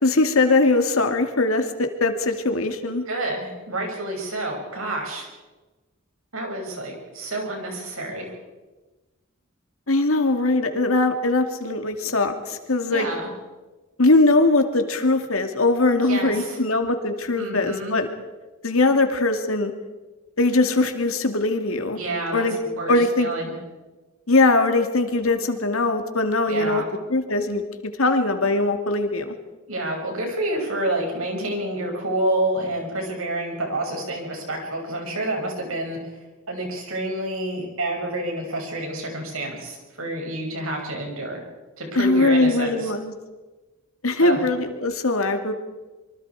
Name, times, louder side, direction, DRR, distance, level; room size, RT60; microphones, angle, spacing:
voice 1, 0.0-3.0 9.9-13.1 14.0-18.1 18.6-19.7 20.4-22.0 22.3-22.6 22.9-23.3 24.3-26.8 27.1-29.4 42.0-43.1 44.0-45.5, left 2 dB, 80° left, 6 dB, 2.3 m, -21 dB
voice 2, 3.1-5.3 6.3-8.3 12.9-13.3 16.0-16.6 17.4-17.9 22.0-23.5 26.5-26.9 29.7-36.0 36.5-41.4 41.8-42.9 44.2-44.4, right 1 dB, 75° right, 1 dB, 6.5 m, -28 dB
25.5 x 24.5 x 4.8 m, 1.2 s
head